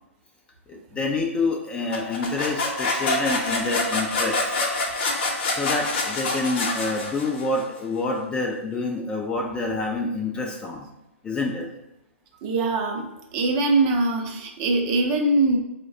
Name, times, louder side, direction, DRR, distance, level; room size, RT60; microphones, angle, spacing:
voice 1, 0.7-4.6 5.5-10.9 11.2-11.7, left 3 dB, 15° left, 0 dB, 0.3 m, -27 dB
sound 1, 1.9-7.6, left 2 dB, 45° left, 0.7 m, -26 dB
voice 2, 12.4-15.6, right 2 dB, 35° right, 2 dB, 0.6 m, -22 dB
4.5 x 2.1 x 2.7 m, 0.91 s
figure-of-eight pair, 115°, 7 cm